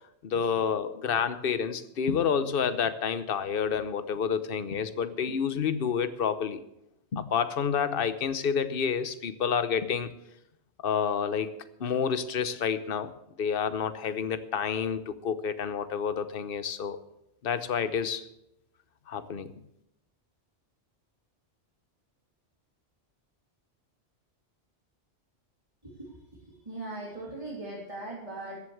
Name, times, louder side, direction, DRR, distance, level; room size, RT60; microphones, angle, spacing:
voice 1, 0.2-6.6 7.1-10.1 10.8-13.1 13.4-17.0 17.4-18.2 19.1-19.5, left 7 dB, 55° left, 12 dB, 1.0 m, -29 dB
voice 2, 26.7-28.6, right 2 dB, 30° right, -6 dB, 3.2 m, -39 dB
14.5 x 7.9 x 7.9 m, 0.82 s
omnidirectional pair, 1.2 m